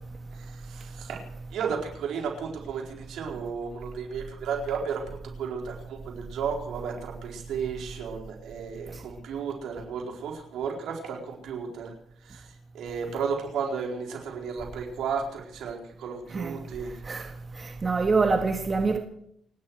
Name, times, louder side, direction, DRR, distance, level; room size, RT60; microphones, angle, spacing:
voice 1, 0.4-1.2 1.5-11.9 12.2-17.0, right 6 dB, 75° right, 4.4 m, -34 dB
voice 2, 17.6-19.0, right 4 dB, 35° right, 1.7 m, -25 dB
29.0 x 9.7 x 4.8 m
cardioid pair, 90°, 0 cm